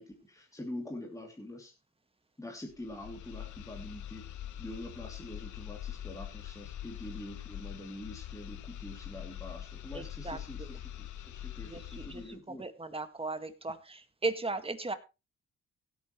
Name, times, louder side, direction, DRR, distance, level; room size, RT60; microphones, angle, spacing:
voice 1, 0.0-1.7 2.4-4.2 4.6-12.6, left 1 dB, 10° left, 0 dB, 2.8 m, -45 dB
sound 1, 2.7-12.4, left 11 dB, 75° left, 1.3 m, -44 dB
voice 2, 9.9-10.8 11.7-14.9, right 3 dB, 20° right, 9 dB, 1.7 m, -37 dB
16.5 x 9.0 x 3.2 m, 0.28 s
cardioid pair, 90°, 30 cm